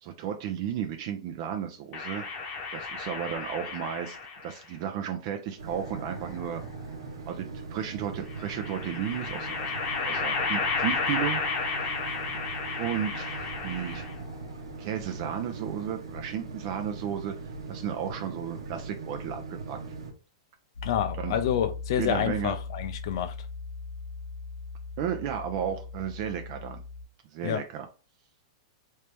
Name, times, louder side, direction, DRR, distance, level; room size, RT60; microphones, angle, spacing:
voice 1, 0.0-2.2 2.7-4.2 4.4-6.7 7.3-9.7 10.0-11.4 12.8-14.1 14.8-17.3 17.7-19.8 21.2-21.4 22.0-22.5 25.0-26.8 27.3-27.9, right 9 dB, 50° right, 0.5 m, -33 dB
sound 1, 1.9-4.6 5.7-6.7 8.3-14.3, left 4 dB, 35° left, 0.9 m, -33 dB
sound 2, 5.6-20.1, right 4 dB, 90° right, 0.9 m, -40 dB
Piano, 20.7-27.0, left 4 dB, 90° left, 1.1 m, -39 dB
voice 2, 20.8-23.3 27.4-27.6, left 9 dB, 60° left, 0.6 m, -28 dB
3.3 x 2.9 x 3.3 m
hypercardioid pair, 135°, 3 cm